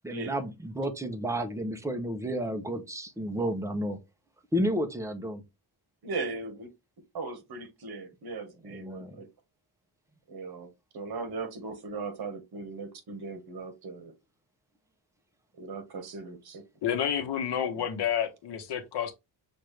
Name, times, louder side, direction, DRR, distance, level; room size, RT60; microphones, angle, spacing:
voice 1, 0.0-4.0 4.5-5.4 8.7-9.2, equal, 5° right, 0.6 m, -31 dB
voice 2, 6.0-6.7 7.1-9.3 10.3-10.7 10.9-14.1 15.6-16.6 17.7-17.8, right 3 dB, 65° right, 1.5 m, -38 dB
voice 3, 16.8-19.1, left 9 dB, 80° left, 1.1 m, -29 dB
6.0 x 2.5 x 3.2 m
wide cardioid pair, 145°, 41 cm